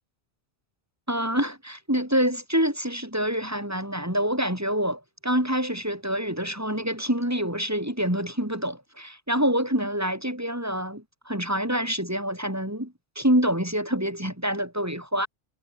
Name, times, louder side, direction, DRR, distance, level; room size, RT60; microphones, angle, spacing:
voice 1, 1.1-15.3, equal, 15° right, 5.7 m, -26 dB
omnidirectional pair, 1.1 m